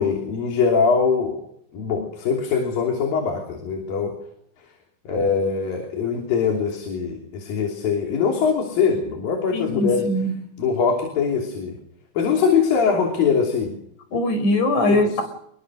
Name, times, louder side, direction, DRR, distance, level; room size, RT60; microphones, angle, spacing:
voice 1, 0.0-1.4 1.7-4.1 5.1-10.1 10.6-11.8 12.2-13.7 14.9-15.2, left 6 dB, 85° left, 2 dB, 4.9 m, -22 dB
voice 2, 9.5-10.3 14.1-15.2, left 1 dB, 60° left, 8 dB, 6.4 m, -21 dB
28.5 x 21.5 x 6.5 m, 0.70 s
omnidirectional pair, 4.0 m